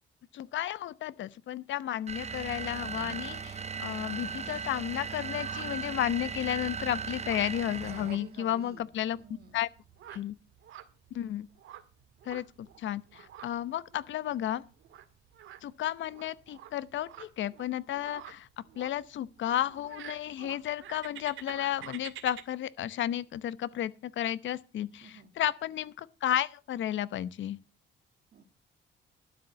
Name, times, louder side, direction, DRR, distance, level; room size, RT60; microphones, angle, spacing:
voice 1, 0.3-9.2 9.5-9.7 10.1-10.4 11.1-11.5 12.3-14.6 15.6-18.5 18.8-27.6, left 11 dB, 70° left, 0.8 m, -33 dB
sound 1, 2.1-8.3, right 6 dB, 35° right, 0.9 m, -37 dB
sound 2, 5.2-22.4, right 11 dB, 80° right, 1.9 m, -51 dB
voice 2, 7.9-8.8 9.2-9.6 25.0-25.3 28.3-28.4, right 6 dB, 55° right, 1.7 m, -49 dB
12.0 x 7.1 x 7.4 m
cardioid pair, 90°, 20 cm